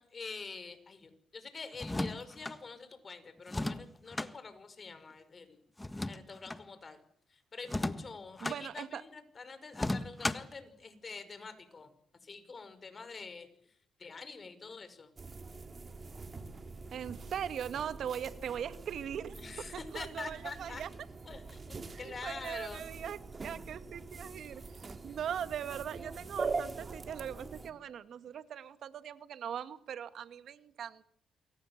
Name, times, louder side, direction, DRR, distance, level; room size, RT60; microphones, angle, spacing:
voice 1, 0.0-5.6 6.1-7.0 7.3-11.9 12.2-13.7 14.0-15.1 19.4-20.8 21.3-22.8, left 4 dB, 35° left, 11 dB, 5.7 m, -46 dB
sound 1, 1.7-2.6 3.5-4.3 5.8-6.6 7.6-8.6 9.7-10.6, left 2 dB, 15° left, 1.5 m, -35 dB
voice 2, 8.4-9.0 16.9-20.9 21.9-23.2 23.4-31.0, right 9 dB, 65° right, 11 dB, 2.1 m, -40 dB
sound 2, 15.2-27.7, right 4 dB, 35° right, 2.7 m, -43 dB
28.0 x 23.5 x 7.5 m, 0.66 s
cardioid pair, 90°, 0 cm